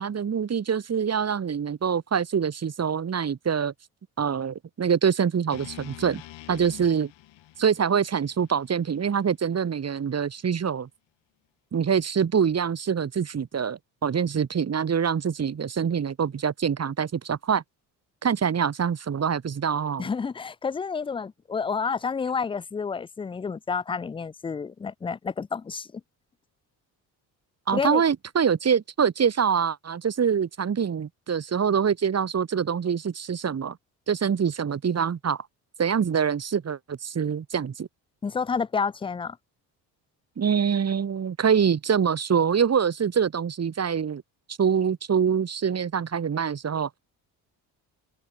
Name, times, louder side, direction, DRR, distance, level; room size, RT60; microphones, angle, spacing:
voice 1, 0.0-3.7 4.2-6.2 6.5-7.1 7.6-10.9 11.7-17.6 18.2-20.1 27.7-33.8 34.1-35.4 35.8-37.9 40.4-44.2 44.5-47.0, right 7 dB, 35° right, 1.4 m, -25 dB
sound 1, 5.5-9.7, left 15 dB, 75° left, 5.5 m, -46 dB
voice 2, 20.0-25.9 27.7-28.0 38.2-39.4, left 5 dB, 15° left, 0.3 m, -29 dB
hypercardioid pair, 60°, 45 cm